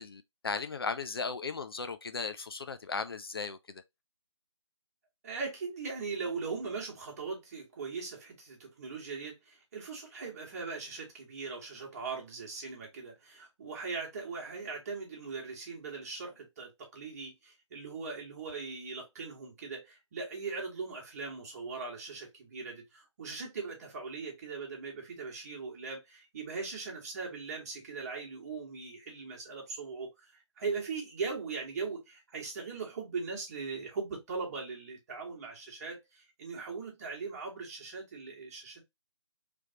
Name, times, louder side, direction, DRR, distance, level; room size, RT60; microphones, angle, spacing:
voice 1, 0.0-3.8, left 4 dB, 50° left, 0.4 m, -36 dB
voice 2, 5.2-38.8, right 4 dB, 30° right, 1.5 m, -40 dB
3.3 x 3.1 x 2.8 m
figure-of-eight pair, 150°, 16 cm